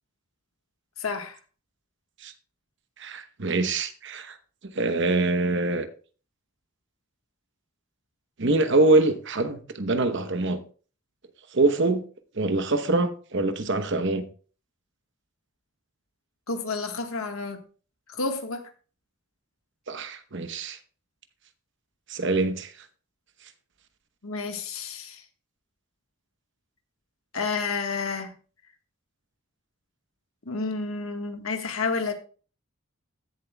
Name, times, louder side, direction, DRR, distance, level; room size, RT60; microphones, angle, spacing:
voice 1, 1.0-1.4 16.5-17.6 18.1-18.6 24.2-25.2 27.3-28.3 30.5-32.1, left 4 dB, 90° left, 1.5 m, -30 dB
voice 2, 3.0-4.4 4.7-5.9 8.4-10.6 11.5-12.0 12.3-14.2 19.9-20.8 22.1-22.7, right 2 dB, 60° right, 1.0 m, -24 dB
15.0 x 7.3 x 2.3 m
head